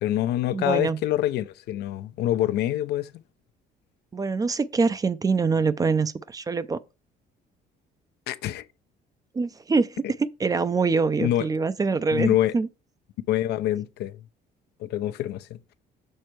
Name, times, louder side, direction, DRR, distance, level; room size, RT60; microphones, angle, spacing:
voice 1, 0.0-3.2 8.3-8.6 11.2-11.5 12.1-12.5 13.3-14.2 14.8-15.6, left 13 dB, 75° left, 0.6 m, -26 dB
voice 2, 0.5-1.0 4.1-6.8 9.3-12.7, right 4 dB, 20° right, 0.4 m, -24 dB
6.6 x 4.3 x 4.5 m
cardioid pair, 110°, 17 cm